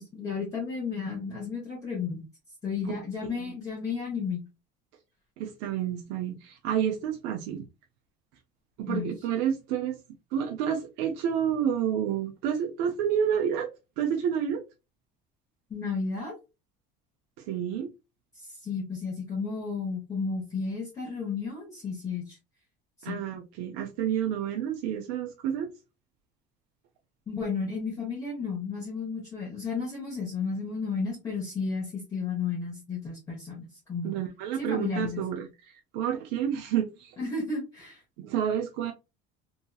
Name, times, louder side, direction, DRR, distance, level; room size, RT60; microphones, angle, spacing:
voice 1, 0.0-2.2 2.6-4.4 8.9-9.1 15.7-16.4 18.6-22.4 23.1-23.2 27.3-34.2 34.6-35.2 37.2-38.0, left 5 dB, 20° left, 0.9 m, -33 dB
voice 2, 3.2-3.5 5.4-7.6 8.8-10.0 10.3-13.7 14.0-14.6 17.4-17.9 23.0-25.7 34.0-37.2 38.2-38.9, right 9 dB, 75° right, 0.5 m, -29 dB
2.8 x 2.7 x 2.2 m
cardioid pair, 175°, 18 cm